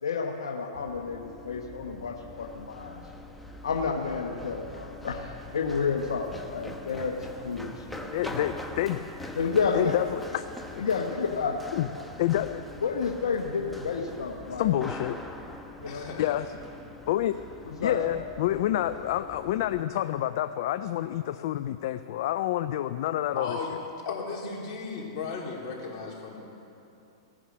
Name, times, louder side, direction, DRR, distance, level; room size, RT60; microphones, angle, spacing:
voice 1, 0.0-3.0 3.6-7.2 7.4-8.0 9.4-9.9 10.8-11.6 12.8-14.7 15.8-16.1 17.7-18.0, left 5 dB, 90° left, 3 dB, 1.0 m, -30 dB
Run, 0.7-19.8, left 1 dB, 5° left, 0.9 m, -43 dB
voice 2, 8.1-9.0 9.7-10.4 11.7-11.9 12.2-12.6 14.6-15.2 16.2-16.5 17.1-17.4 17.8-23.6, left 13 dB, 60° left, 11 dB, 0.4 m, -28 dB
voice 3, 15.9-16.4 23.4-23.8 24.0-26.4, left 5 dB, 45° left, -3 dB, 3.5 m, -35 dB
17.5 x 9.9 x 6.2 m, 2.7 s
hypercardioid pair, 125°, 3 cm